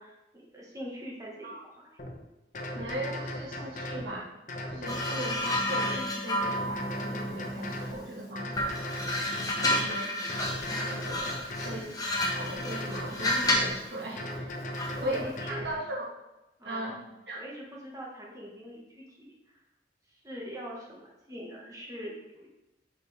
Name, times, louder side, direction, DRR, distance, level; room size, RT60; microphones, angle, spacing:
voice 1, 0.0-1.9 9.8-9.9 14.8-15.8 16.6-17.0 17.3-19.6 20.1-22.5, equal, 20° right, -3 dB, 1.6 m, -43 dB
sound 1, 2.0-2.1 2.5-4.1 4.5-6.0 6.4-7.9 8.3-9.9 10.3-11.8 12.2-13.7 14.2-15.7, left 1 dB, 45° left, 1.0 m, -37 dB
voice 2, 2.7-4.4 4.7-8.8 9.5-10.3 10.7-11.9 12.2-16.1 16.6-17.0 17.3-17.4, right 1 dB, 75° right, -3 dB, 2.0 m, -38 dB
sound 2, 4.9-8.1 8.5-13.8 14.8-15.0, left 1 dB, 20° left, 1.1 m, -31 dB
6.7 x 6.3 x 3.5 m, 0.99 s
head